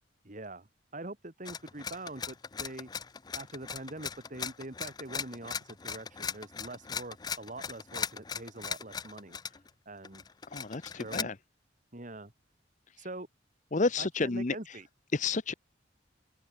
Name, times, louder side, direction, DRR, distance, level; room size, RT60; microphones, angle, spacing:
voice 1, 0.2-0.7 0.9-2.9 3.3-9.6 9.9-10.2 11.0-11.3 11.9-12.3 13.0-13.3 14.0-14.9, right 2 dB, 40° right, 2.1 m, -44 dB
sound 1, 1.4-9.7 10.0-11.2, left 6 dB, 20° left, 0.4 m, -38 dB
voice 2, 10.5-11.4 13.0-13.1 13.7-14.8 15.1-15.5, left 3 dB, 40° left, 0.8 m, -31 dB
open air
head